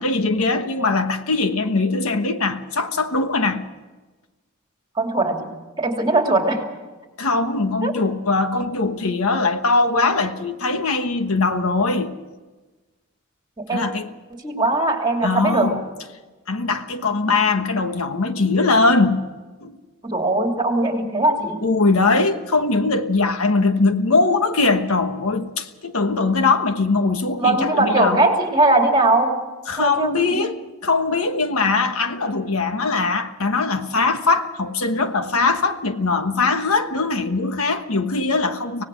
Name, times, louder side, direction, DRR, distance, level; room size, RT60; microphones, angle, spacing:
voice 1, 0.0-3.6 7.2-12.1 13.7-14.1 15.2-15.8 16.5-19.2 19.6-19.8 21.6-28.2 29.7-38.8, left 3 dB, 80° left, 1.3 m, -21 dB
voice 2, 5.0-5.5 5.8-6.6 7.8-7.9 13.7-13.8 14.3-15.7 20.0-21.6 27.4-29.4 29.8-30.4, right 2 dB, 20° right, 2.7 m, -20 dB
25.0 x 18.0 x 6.2 m
head